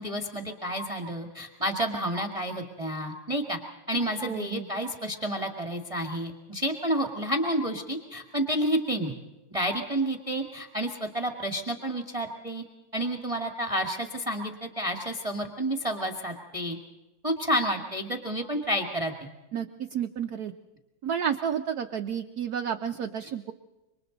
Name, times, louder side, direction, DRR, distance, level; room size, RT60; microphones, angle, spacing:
voice 1, 0.0-3.6 3.9-9.1 9.5-12.6 12.9-16.8 17.2-19.3, right 1 dB, 15° right, 2 dB, 1.7 m, -30 dB
voice 2, 4.2-4.7 19.5-20.5 21.0-23.5, right 8 dB, 60° right, 5 dB, 1.1 m, -31 dB
27.5 x 24.0 x 4.0 m, 1.1 s
omnidirectional pair, 2.3 m